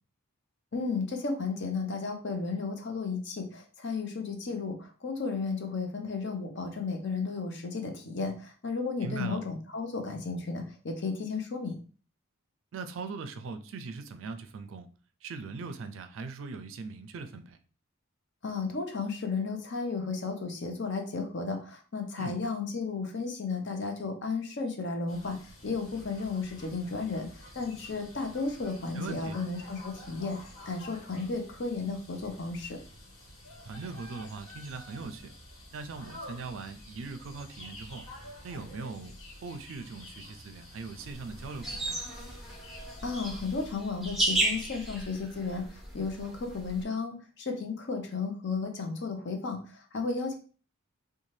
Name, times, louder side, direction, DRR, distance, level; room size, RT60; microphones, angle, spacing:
voice 1, 0.7-11.8 18.4-32.8 43.0-50.3, left 4 dB, 55° left, 4 dB, 0.6 m, -34 dB
voice 2, 9.0-9.4 12.7-14.9 15.2-17.6 22.2-22.4 28.9-29.4 33.7-35.3 35.7-38.0 38.4-39.1 39.4-42.1, right 4 dB, 65° right, 9 dB, 0.4 m, -40 dB
sound 1, 25.1-43.7, left 1 dB, 75° left, 1.3 m, -49 dB
sound 2, 41.0-46.8, right 1 dB, ahead, 0.5 m, -34 dB
2.7 x 2.3 x 3.1 m, 0.39 s
head